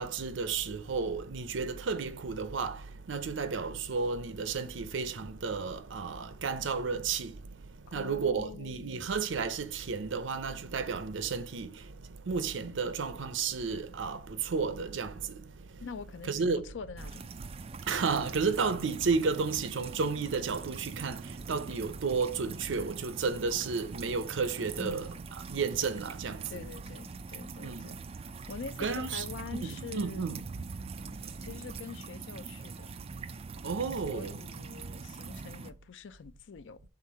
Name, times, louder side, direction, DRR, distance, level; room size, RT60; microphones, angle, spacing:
voice 1, 0.0-7.3 7.9-11.8 12.3-15.4 16.3-16.6 17.9-21.2 21.5-25.1 25.5-26.6 27.6-27.9 28.8-29.2 29.6-30.5 33.6-34.4, right 5 dB, 75° right, 0.6 m, -32 dB
voice 2, 7.9-9.2 15.8-17.3 24.8-25.2 26.5-28.0 28.5-30.2 31.4-32.9 34.0-36.8, left 5 dB, 70° left, 0.5 m, -44 dB
sound 1, 17.0-35.7, right 4 dB, 30° right, 0.4 m, -43 dB
5.8 x 3.7 x 4.6 m
head